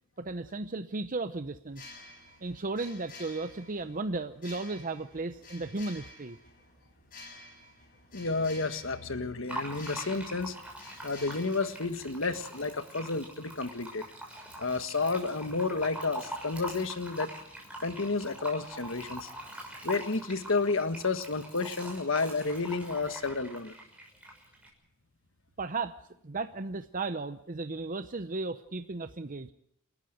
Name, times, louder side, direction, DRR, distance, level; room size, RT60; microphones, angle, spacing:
voice 1, 0.2-1.8 2.4-6.4 25.6-26.0 26.2-29.5, right 3 dB, 40° right, 9 dB, 0.8 m, -35 dB
sound 1, 1.6-12.4, left 2 dB, 40° left, 6.3 m, -51 dB
voice 2, 8.1-10.5 11.0-14.0 14.6-17.3 17.8-19.3 19.8-23.8, left 3 dB, 65° left, 9 dB, 1.6 m, -31 dB
Fill (with liquid), 9.5-24.7, right 1 dB, 5° right, 6.4 m, -43 dB
29.5 x 13.0 x 7.8 m, 0.73 s
head